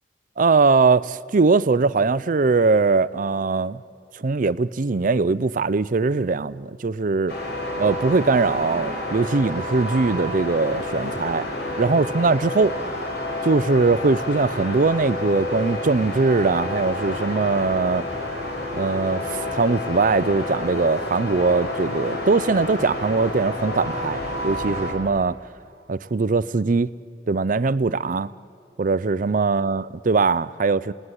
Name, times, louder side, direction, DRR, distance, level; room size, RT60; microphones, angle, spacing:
voice 1, 0.4-3.8 4.1-7.3 7.8-11.5 11.8-12.7 13.4-18.1 18.7-25.4 25.9-26.9 27.3-28.3 28.8-30.9, right 4 dB, 50° right, 0.5 m, -21 dB
sound 1, 7.3-24.9, left 1 dB, 60° left, 4.9 m, -29 dB
29.5 x 18.0 x 9.9 m
head